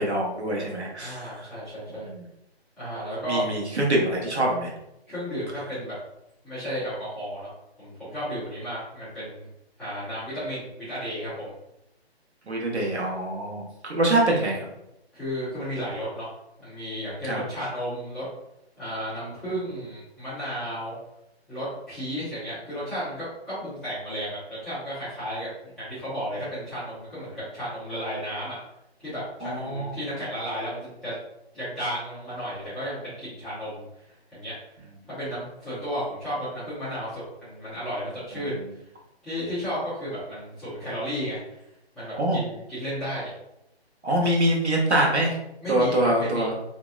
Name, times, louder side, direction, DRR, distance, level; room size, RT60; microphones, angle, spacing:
voice 1, 0.0-1.2 2.1-2.2 3.3-4.7 12.5-14.7 17.3-17.4 29.4-30.0 42.2-42.4 44.0-45.3 45.7-46.5, right 1 dB, 90° right, -2 dB, 1.0 m, -24 dB
voice 2, 1.0-2.1 2.8-3.4 5.1-5.9 6.4-7.5 7.8-9.5 9.8-11.5 15.1-16.3 16.6-18.3 18.8-20.9 21.5-28.5 29.0-31.1 31.5-33.9 34.3-34.5 35.1-38.6 39.2-41.6 41.9-43.3 45.6-46.5, equal, ahead, -17 dB, 1.0 m, -33 dB
2.9 x 2.8 x 2.4 m, 0.84 s
figure-of-eight pair, 150°, 32 cm